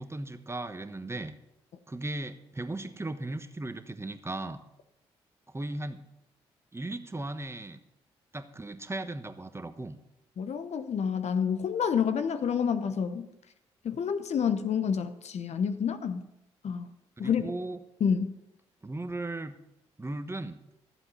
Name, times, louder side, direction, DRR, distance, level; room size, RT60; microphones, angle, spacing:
voice 1, 0.0-1.3 1.9-4.6 5.5-6.0 6.7-7.8 8.3-9.9 17.2-17.8 18.8-19.6 20.0-20.6, right 2 dB, 20° right, 9 dB, 1.2 m, -37 dB
voice 2, 10.4-13.3 13.8-16.3 16.6-16.9 17.2-17.4 18.0-18.3, left 7 dB, 55° left, 10 dB, 1.0 m, -28 dB
14.0 x 7.8 x 5.6 m, 0.85 s
hypercardioid pair, 45°, 13 cm